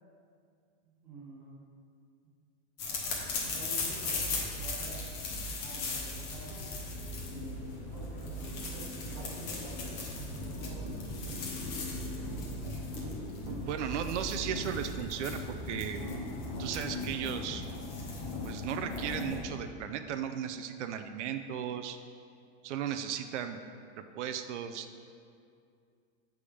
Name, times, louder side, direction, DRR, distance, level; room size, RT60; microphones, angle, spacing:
voice 1, 0.8-1.6 2.8-6.7 7.3-11.4, right 2 dB, 5° right, -7 dB, 0.9 m, -49 dB
sound 1, 2.8-19.4, left 2 dB, 25° left, 0.7 m, -38 dB
sound 2, 6.1-13.5, right 7 dB, 60° left, 1.1 m, -53 dB
sound 3, 6.3-16.8, equal, 35° right, 0.7 m, -48 dB
voice 2, 13.6-16.0 16.6-17.6 18.4-22.0 22.6-23.6 24.1-24.9, right 9 dB, 80° right, 8 dB, 0.5 m, -36 dB
6.8 x 3.5 x 5.0 m, 2.3 s
supercardioid pair, 175°, 35 cm